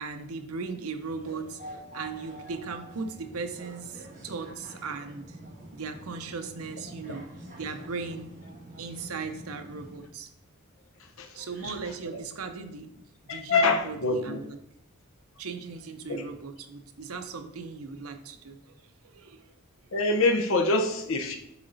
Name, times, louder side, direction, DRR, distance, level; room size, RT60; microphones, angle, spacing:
voice 1, 0.0-5.4 5.7-7.2 7.5-8.3 8.8-10.3 11.3-14.6 15.4-18.6 19.0-19.5, right 4 dB, 80° right, 6 dB, 0.7 m, -38 dB
sound 1, 1.0-10.0, right 1 dB, 35° right, 1.8 m, -46 dB
voice 2, 11.2-11.7 13.3-14.4 16.1-16.2 19.9-21.4, left 3 dB, 65° left, 3 dB, 0.9 m, -25 dB
7.3 x 4.0 x 4.0 m, 0.76 s
head